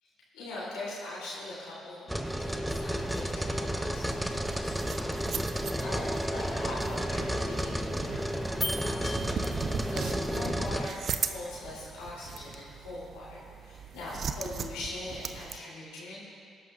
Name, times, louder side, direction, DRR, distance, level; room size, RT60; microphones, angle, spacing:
voice 1, 0.0-16.2, left 2 dB, 75° left, -7 dB, 3.3 m, -42 dB
sound 1, 2.1-10.9, equal, 5° right, 0.8 m, -32 dB
sound 2, 2.7-15.6, right 6 dB, 55° right, 0.6 m, -40 dB
sound 3, 8.6-10.1, left 1 dB, 20° left, 2.1 m, -37 dB
20.0 x 11.0 x 2.5 m, 2.4 s
hypercardioid pair, 45°, 0 cm